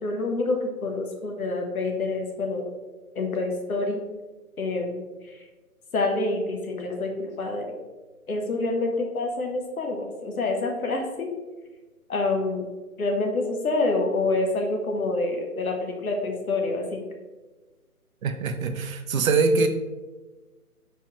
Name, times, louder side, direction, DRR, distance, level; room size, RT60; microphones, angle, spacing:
voice 1, 0.0-2.7 3.2-4.0 4.6-5.0 5.3-5.4 5.9-7.7 8.3-11.3 12.1-12.7 13.0-17.0, left 2 dB, 70° left, 2 dB, 0.8 m, -27 dB
voice 2, 18.2-19.7, right 4 dB, 65° right, 7 dB, 0.5 m, -23 dB
4.3 x 2.2 x 3.0 m, 1.2 s
figure-of-eight pair, 155°, 45 cm